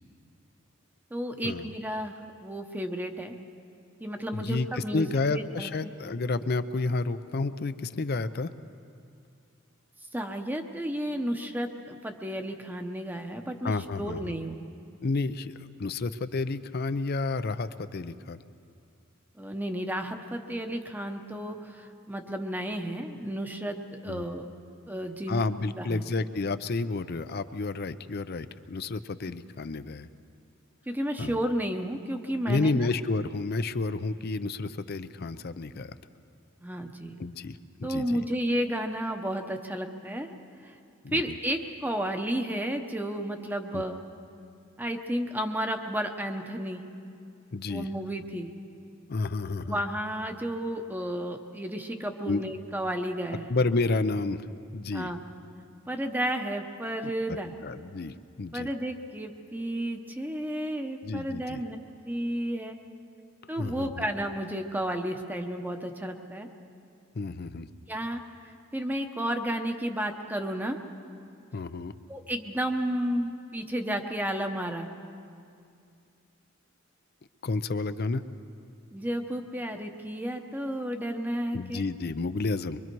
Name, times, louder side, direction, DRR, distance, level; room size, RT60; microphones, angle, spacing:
voice 1, 1.1-3.3 4.0-5.9 10.1-14.6 19.4-24.4 24.9-25.4 25.8-26.0 29.3-29.4 30.9-32.9 36.6-37.2 37.8-40.3 40.6-40.7 41.1-44.0 44.8-46.8 47.7-48.5 49.7-53.5 54.9-55.2 55.9-57.5 58.5-61.8 62.1-62.8 63.5-66.5 67.9-70.8 72.1-74.9 78.9-81.8, equal, 10° right, 5 dB, 0.9 m, -32 dB
voice 2, 4.3-8.5 13.6-14.3 15.0-18.4 24.1-24.2 25.3-30.1 31.2-31.4 32.5-36.0 37.2-38.2 41.0-41.2 43.7-43.8 47.5-47.9 49.1-49.8 52.3-52.4 53.5-54.5 54.7-55.1 57.0-58.7 61.0-61.6 63.6-63.9 67.1-67.7 71.5-71.9 77.4-78.2 81.5-82.8, left 3 dB, 50° left, 12 dB, 0.5 m, -30 dB
23.5 x 23.5 x 4.6 m, 2.4 s
head